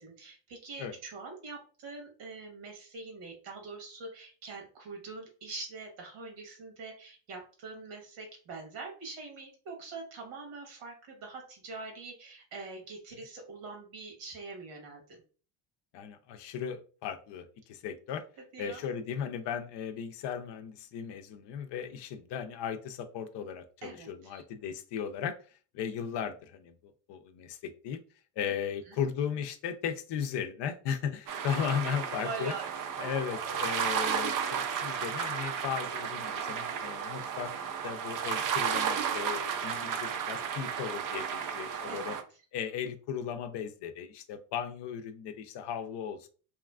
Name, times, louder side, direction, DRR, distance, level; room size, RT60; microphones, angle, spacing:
voice 1, 0.0-15.2 18.5-18.8 23.8-24.4 28.4-28.6 28.9-29.0 32.2-32.7 33.0-33.1 33.5-33.6 41.9-42.2, right 3 dB, 75° right, 2 dB, 1.3 m, -44 dB
voice 2, 15.9-18.2 18.6-25.4 25.7-28.0 28.4-32.5 33.0-37.5 37.8-42.2 42.5-46.3, left 8 dB, 60° left, 8 dB, 0.6 m, -36 dB
sound 1, 31.3-42.2, right 7 dB, 45° right, 0.5 m, -33 dB
2.9 x 2.3 x 2.3 m, 0.38 s
supercardioid pair, 75°, 49 cm